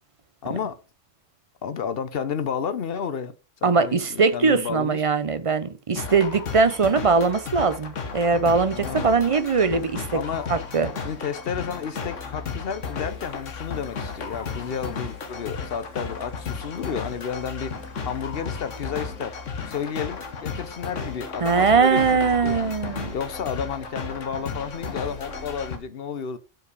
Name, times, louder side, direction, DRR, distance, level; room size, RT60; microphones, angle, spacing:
voice 1, 0.4-0.8 1.6-3.3 3.6-5.0 8.7-9.1 10.1-10.5 11.0-17.8 18.0-19.4 19.7-22.7 23.1-26.4, left 7 dB, 55° left, 0.9 m, -31 dB
voice 2, 3.6-10.2 10.5-10.9 21.4-23.1, right 4 dB, 40° right, 0.5 m, -21 dB
sound 1, 6.0-25.8, left 5 dB, 80° left, 1.5 m, -34 dB
7.9 x 4.9 x 4.9 m
omnidirectional pair, 1.3 m